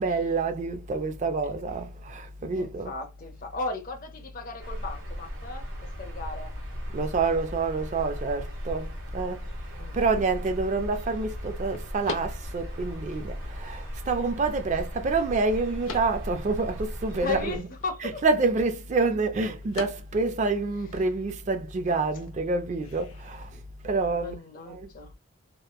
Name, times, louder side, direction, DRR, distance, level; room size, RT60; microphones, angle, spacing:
voice 1, 0.0-2.9 6.9-9.4 9.9-17.7 18.0-23.5 23.8-24.4 24.7-24.9, right 3 dB, 35° right, 0.3 m, -27 dB
voice 2, 2.6-5.7 6.0-6.5 9.8-10.3 17.2-18.2 24.2-25.1, left 3 dB, 40° left, 0.6 m, -36 dB
sound 1, 4.6-17.6, equal, 75° right, 1.2 m, -37 dB
sound 2, 8.2-23.5, left 4 dB, 85° left, 0.7 m, -47 dB
3.0 x 2.1 x 2.2 m
head